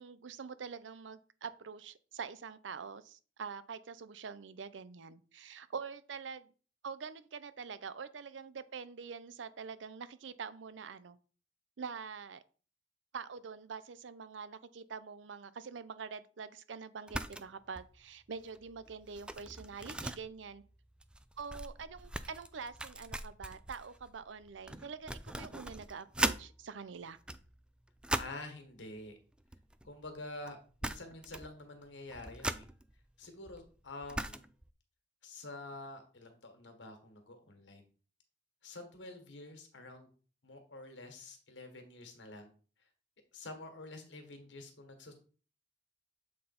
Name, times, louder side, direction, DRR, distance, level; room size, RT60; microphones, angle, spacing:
voice 1, 0.0-6.5 6.8-11.2 11.8-12.4 13.1-20.6 21.4-27.2, right 5 dB, 90° right, 0.5 m, -45 dB
sound 1, 17.1-17.5 17.8-18.0 18.4-26.4 27.1-28.5 29.4-30.2 30.5-30.6 30.8-31.6 31.8-34.7, right 1 dB, 5° right, 0.3 m, -40 dB
voice 2, 28.1-29.2 29.8-32.6 33.2-34.5 35.2-37.8 38.6-40.1 40.4-42.5 43.3-45.1, left 2 dB, 85° left, 1.6 m, -48 dB
7.5 x 3.9 x 4.2 m
head